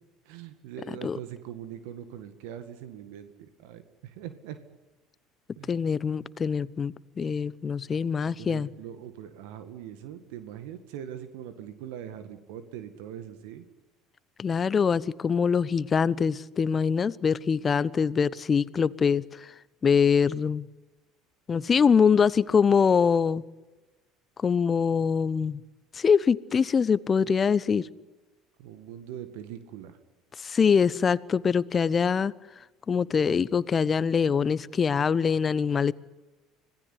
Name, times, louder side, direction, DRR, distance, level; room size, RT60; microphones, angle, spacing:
voice 1, 0.3-4.6 5.6-5.9 8.4-13.7 28.6-30.0, right 10 dB, 70° right, 10 dB, 2.0 m, -42 dB
voice 2, 5.7-8.7 14.4-19.2 19.8-20.7 21.5-23.4 24.4-25.6 25.9-27.9 30.4-32.3 32.9-35.9, left 6 dB, 35° left, 19 dB, 1.0 m, -24 dB
26.0 x 18.5 x 9.7 m, 1.1 s
hypercardioid pair, 65°, 0 cm